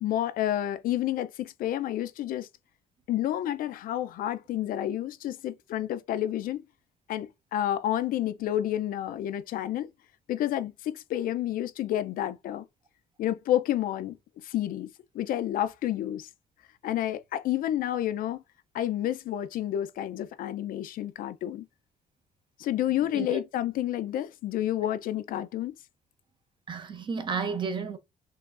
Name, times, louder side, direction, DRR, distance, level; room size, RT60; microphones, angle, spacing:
voice 1, 0.0-2.5 3.1-6.6 7.1-9.9 10.3-12.6 13.2-14.9 15.1-16.3 16.8-18.4 18.7-21.6 22.6-25.7, left 12 dB, 70° left, 0.5 m, -30 dB
voice 2, 26.7-28.0, right 5 dB, 30° right, 0.6 m, -32 dB
4.6 x 3.1 x 2.5 m
cardioid pair, 150°, 15 cm